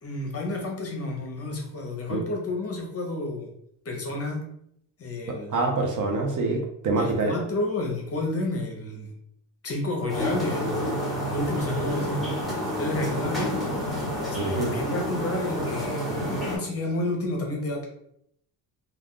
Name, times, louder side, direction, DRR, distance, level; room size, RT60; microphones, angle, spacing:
voice 1, 0.0-3.5 3.8-4.4 5.0-5.6 7.0-9.1 9.6-10.7 11.3-12.4 12.8-13.5 14.2-17.9, left 2 dB, 35° left, 1 dB, 0.8 m, -30 dB
voice 2, 5.3-7.3 14.3-14.7, right 3 dB, 45° right, 2 dB, 0.7 m, -26 dB
sound 1, 10.1-16.6, equal, ahead, 1.0 m, -29 dB
2.4 x 2.3 x 3.6 m, 0.73 s
cardioid pair, 120°, 42 cm